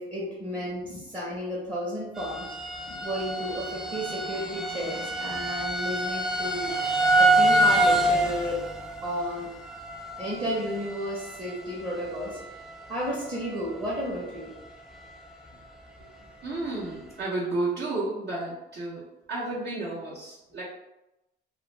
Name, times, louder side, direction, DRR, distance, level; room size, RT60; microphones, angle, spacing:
voice 1, 0.0-2.5 2.9-6.7 7.2-8.6 9.0-9.5 10.2-12.4 12.9-14.5 16.0-16.1, equal, 25° right, -6 dB, 0.8 m, -32 dB
sound 1, 2.2-12.8 13.1-13.6 14.1-14.2 14.6-14.7, right 1 dB, 5° right, 0.4 m, -27 dB
voice 2, 16.4-20.6, right 2 dB, 60° right, -8 dB, 0.8 m, -32 dB
2.4 x 2.1 x 3.1 m, 0.92 s
cardioid pair, 90°, 20 cm